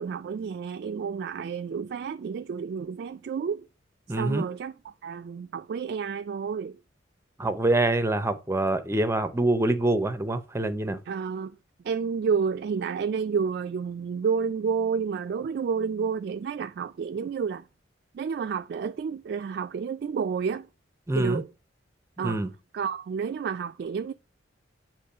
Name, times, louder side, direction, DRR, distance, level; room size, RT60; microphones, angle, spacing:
voice 1, 0.0-3.7 4.2-6.8 11.1-11.6 11.8-17.7 18.1-20.7 21.1-21.5 22.2-22.4 22.7-24.1, right 6 dB, 55° right, 0.3 m, -30 dB
voice 2, 4.1-4.5 7.4-11.0 21.1-21.4 22.2-22.5, right 2 dB, 15° right, 0.6 m, -25 dB
8.4 x 3.0 x 5.4 m
head